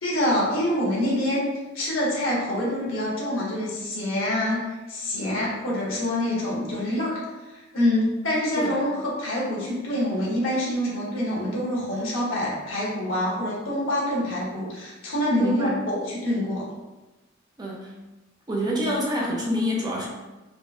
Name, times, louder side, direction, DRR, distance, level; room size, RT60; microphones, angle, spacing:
voice 1, 0.0-1.5 1.7-4.6 4.9-7.2 7.5-16.7, left 1 dB, 75° left, -5 dB, 1.3 m, -26 dB
voice 2, 15.4-15.8 17.6-17.9 18.5-20.1, equal, 20° right, -3 dB, 0.5 m, -27 dB
4.1 x 2.6 x 2.4 m, 1.1 s
head